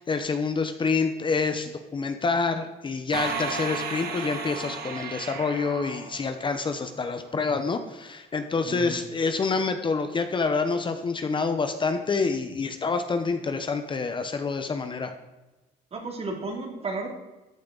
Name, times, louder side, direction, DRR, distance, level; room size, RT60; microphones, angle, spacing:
voice 1, 0.0-15.1, left 4 dB, 30° left, 8 dB, 0.9 m, -27 dB
sound 1, 3.1-6.8, right 5 dB, 70° right, 1.7 m, -34 dB
voice 2, 8.6-9.0 15.9-17.1, right 3 dB, 35° right, 2 dB, 2.7 m, -33 dB
14.0 x 8.5 x 4.0 m, 1.1 s
cardioid pair, 110°, 17 cm